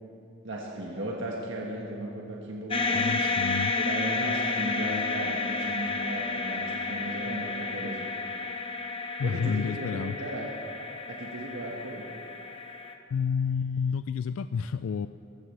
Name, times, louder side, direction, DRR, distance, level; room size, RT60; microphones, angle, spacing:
voice 1, 0.4-3.1 3.7-8.1 9.2-10.5 11.1-12.1, right 1 dB, 65° right, -2 dB, 1.5 m, -36 dB
sound 1, 2.7-12.9, left 3 dB, 25° left, 0.9 m, -31 dB
voice 2, 2.9-3.7 9.2-10.2 13.1-15.1, left 6 dB, 85° left, 12 dB, 0.3 m, -30 dB
23.0 x 15.5 x 3.3 m, 2.9 s
head